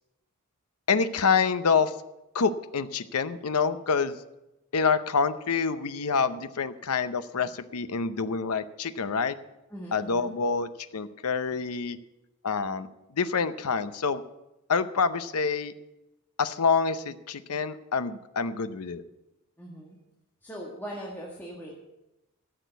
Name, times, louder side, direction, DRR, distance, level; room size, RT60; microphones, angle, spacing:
voice 1, 0.9-1.9 2.3-4.2 4.7-9.4 9.9-12.0 12.4-12.9 13.1-14.2 14.7-15.7 16.4-19.0, left 5 dB, 80° left, 12 dB, 0.7 m, -27 dB
voice 2, 9.7-10.3 19.6-20.0 20.4-21.7, equal, 10° left, -4 dB, 1.7 m, -40 dB
14.0 x 6.6 x 8.1 m, 0.94 s
head